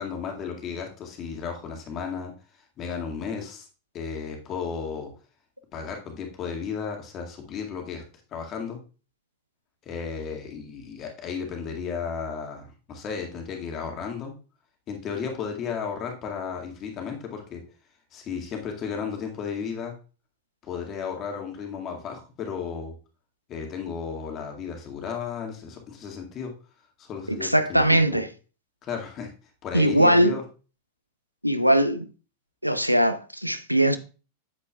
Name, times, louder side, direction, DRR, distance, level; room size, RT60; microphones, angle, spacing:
voice 1, 0.0-2.3 2.8-3.7 3.9-5.1 5.7-8.0 8.3-8.8 9.9-14.3 14.9-17.6 18.1-19.9 20.6-22.9 23.5-26.5 27.0-28.0 28.8-29.3 29.6-30.4, left 6 dB, 30° left, 1.9 m, -34 dB
voice 2, 27.3-28.3 29.7-30.4 31.4-32.1 32.6-34.0, right 1 dB, 90° right, 0.6 m, -20 dB
8.4 x 8.1 x 2.3 m
figure-of-eight pair, 90°, 0 cm